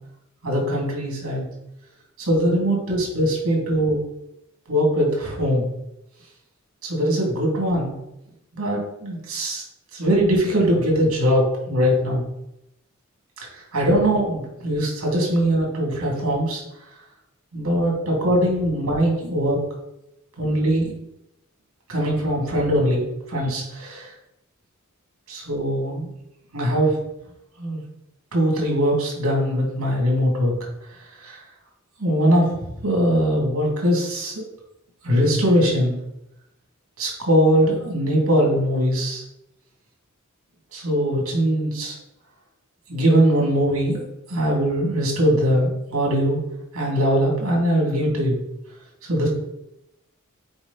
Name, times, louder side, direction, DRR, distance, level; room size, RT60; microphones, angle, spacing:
voice 1, 0.4-1.4 2.2-4.0 4.7-5.7 6.8-7.9 8.5-9.6 9.9-12.2 13.5-16.6 17.5-19.6 20.4-20.9 21.9-24.0 25.3-26.1 26.5-26.9 27.6-27.8 28.3-30.5 31.2-31.4 32.0-34.4 35.0-36.0 37.0-39.2 40.7-42.0 42.9-44.0 44.3-46.4 46.7-48.4 49.1-49.3, equal, 85° right, -2 dB, 2.5 m, -21 dB
7.0 x 4.9 x 4.0 m, 0.87 s
head